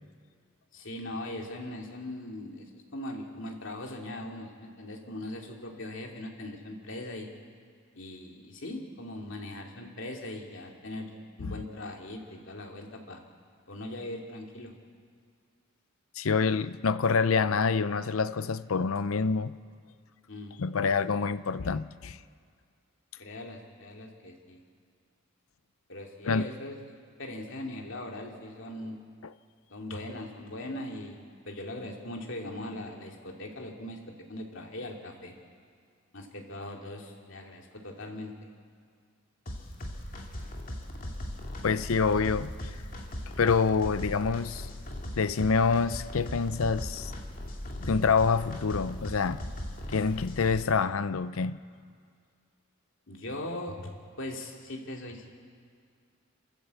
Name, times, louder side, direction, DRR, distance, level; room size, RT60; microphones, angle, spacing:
voice 1, 0.7-7.3 7.9-13.2 13.7-14.7 20.3-20.6 21.1-21.2 23.2-24.6 25.9-26.8 27.2-29.0 29.7-34.0 34.3-35.3 36.1-38.3 53.1-55.3, left 1 dB, 65° left, 2.7 m, -40 dB
voice 2, 16.2-19.5 20.6-22.2 26.3-26.5 29.2-29.3 41.6-42.7 43.4-44.7 45.2-47.1 47.8-49.4 49.9-51.6, left 5 dB, 80° left, 0.6 m, -26 dB
sound 1, 39.5-50.6, left 1 dB, 40° left, 2.4 m, -39 dB
27.5 x 13.5 x 8.2 m
head